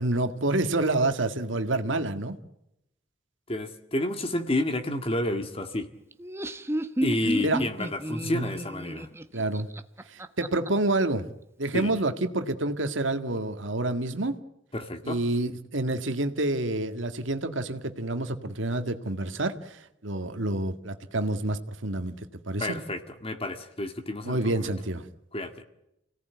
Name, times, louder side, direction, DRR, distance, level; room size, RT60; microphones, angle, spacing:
voice 1, 0.0-2.4 7.4-7.6 8.2-8.5 9.3-9.7 10.1-11.3 11.6-14.4 15.0-22.2 22.5-22.8 24.2-25.1, right 2 dB, 90° right, 8 dB, 1.9 m, -28 dB
voice 2, 3.5-5.9 7.0-9.1 11.7-11.9 14.7-15.2 22.6-24.7 25.3-25.6, left 1 dB, 30° left, 7 dB, 1.9 m, -30 dB
Laughter, 6.1-10.7, right 1 dB, 15° right, 1.1 m, -31 dB
28.5 x 18.0 x 9.4 m, 0.85 s
head